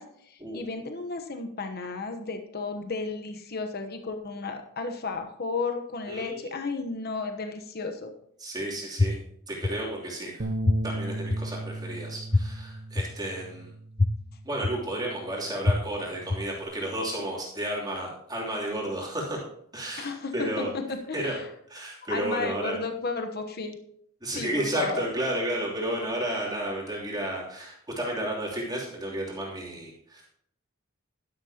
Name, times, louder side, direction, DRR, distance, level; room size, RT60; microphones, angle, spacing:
voice 1, 0.0-8.1 20.0-20.8 21.1-21.2 22.1-23.7 24.4-25.0, left 4 dB, 50° left, 6 dB, 1.0 m, -33 dB
voice 2, 6.1-6.5 8.4-9.2 9.5-10.5 10.8-13.7 14.4-19.4 19.7-20.7 21.1-21.4 21.7-22.8 24.2-30.3, right 1 dB, 20° right, -4 dB, 3.0 m, -32 dB
sound 1, 9.0-9.1 9.6-9.7 10.7-10.8 11.3-11.4 12.3-12.4 13.0-13.1 14.0-14.1 14.6-14.7 15.6-15.7 16.3-16.4, left 3 dB, 25° left, 0.5 m, -21 dB
sound 2, 10.4-16.6, right 1 dB, 45° right, 0.9 m, -37 dB
11.5 x 11.5 x 2.9 m, 0.69 s
head